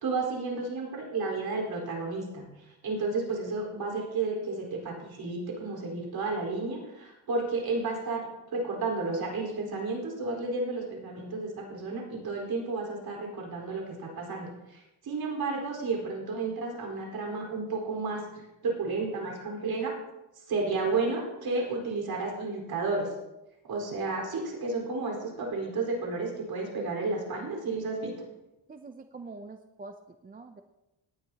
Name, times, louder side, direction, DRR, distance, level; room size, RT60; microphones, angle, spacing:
voice 1, 0.0-19.9 20.5-23.1 23.7-28.1, right 3 dB, 50° right, -1 dB, 4.5 m, -32 dB
voice 2, 28.7-30.6, right 3 dB, 20° right, 7 dB, 0.5 m, -45 dB
18.5 x 10.5 x 2.9 m, 0.97 s
cardioid pair, 140°, 47 cm